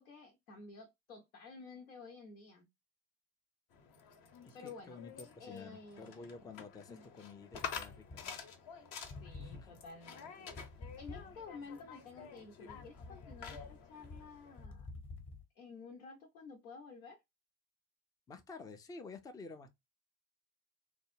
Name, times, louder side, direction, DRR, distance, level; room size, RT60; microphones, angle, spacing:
voice 1, 0.0-2.7 4.5-5.0 5.4-6.4 6.9-7.0 9.2-10.5 11.0-14.9 15.6-17.2, left 4 dB, 80° left, 0.8 m, -52 dB
sound 1, 3.7-14.7, left 6 dB, 50° left, 0.8 m, -49 dB
voice 2, 4.6-8.4 9.4-9.8 18.3-19.7, left 4 dB, 10° left, 0.3 m, -51 dB
sound 2, 7.5-8.7 9.0-11.7 12.2-15.4, left 3 dB, 30° left, 1.0 m, -50 dB
3.6 x 2.1 x 3.1 m
figure-of-eight pair, 60°, 42 cm